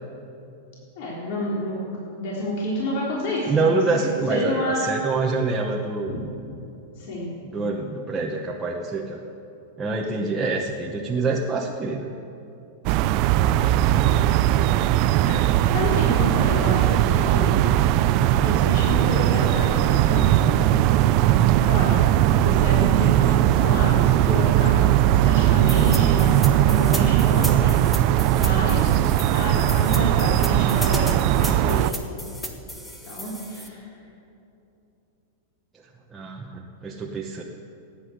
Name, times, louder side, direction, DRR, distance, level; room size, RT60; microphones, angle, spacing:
voice 1, 1.0-1.8 2.2-4.0 4.3-5.0 6.1-6.2 7.0-7.3 10.1-10.2 13.9-14.2 15.2-17.9 18.4-20.6 21.6-22.0 22.3-27.8 28.4-28.8 29.3-31.9 33.1-33.8, left 1 dB, 55° left, -5 dB, 3.8 m, -29 dB
voice 2, 3.5-6.1 7.4-9.2 9.8-12.2 13.6-14.0 36.1-37.4, right 3 dB, 10° right, -2 dB, 1.0 m, -26 dB
sound 1, 12.9-31.9, right 12 dB, 40° right, 0.5 m, -19 dB
sound 2, 25.7-33.7, equal, 5° left, 1.4 m, -35 dB
17.5 x 9.8 x 8.0 m, 2.9 s
supercardioid pair, 155°, 0 cm